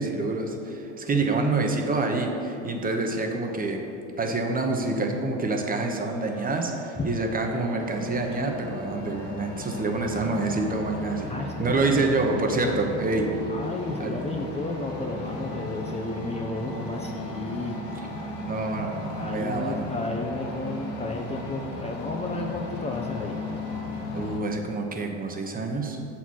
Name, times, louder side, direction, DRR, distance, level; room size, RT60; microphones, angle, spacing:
voice 1, 0.0-3.8 4.2-11.3 11.6-13.3 14.0-14.2 18.5-19.8 24.1-26.0, right 3 dB, 25° right, 2 dB, 0.9 m, -27 dB
voice 2, 1.1-1.6 7.0-7.1 11.3-11.9 13.5-17.8 19.2-23.4, left 2 dB, 15° left, 1 dB, 0.7 m, -33 dB
sound 1, 5.7-24.1, right 1 dB, 60° right, 1.4 m, -49 dB
sound 2, 7.8-24.4, left 2 dB, 80° left, 1.2 m, -36 dB
7.0 x 4.3 x 6.2 m, 2.8 s
hypercardioid pair, 90°, 37 cm